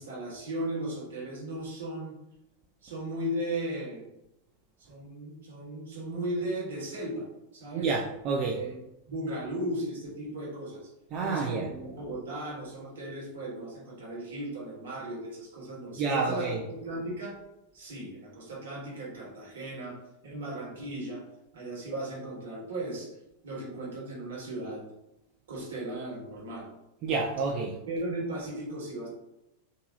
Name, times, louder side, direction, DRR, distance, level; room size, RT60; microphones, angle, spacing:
voice 1, 0.0-2.2 2.8-4.1 4.9-7.3 7.5-7.9 8.5-8.8 9.1-10.9 11.2-17.4 17.7-21.3 21.5-23.1 23.4-24.9 25.5-26.7 27.9-29.1, right 1 dB, 60° right, -4 dB, 1.4 m, -36 dB
voice 2, 7.7-8.6 11.1-11.6 16.0-16.6 27.0-27.8, right 4 dB, 35° right, -1 dB, 0.4 m, -29 dB
3.7 x 2.6 x 2.8 m, 0.89 s
figure-of-eight pair, 90°, 0 cm